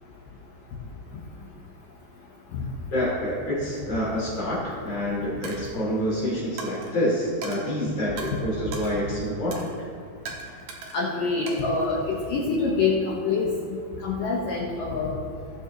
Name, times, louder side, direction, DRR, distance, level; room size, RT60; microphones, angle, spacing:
voice 1, 2.9-9.7, equal, 35° left, -7 dB, 3.3 m, -27 dB
Coin (dropping), 5.4-5.7 6.6-6.9 7.4-7.6 8.2-8.3 8.7-8.9 9.5-9.7 10.3-11.0 11.5-12.4, right 4 dB, 75° right, 2.1 m, -38 dB
voice 2, 10.9-15.2, left 4 dB, 90° left, -4 dB, 1.9 m, -26 dB
19.5 x 6.7 x 3.0 m, 2.2 s
omnidirectional pair, 5.6 m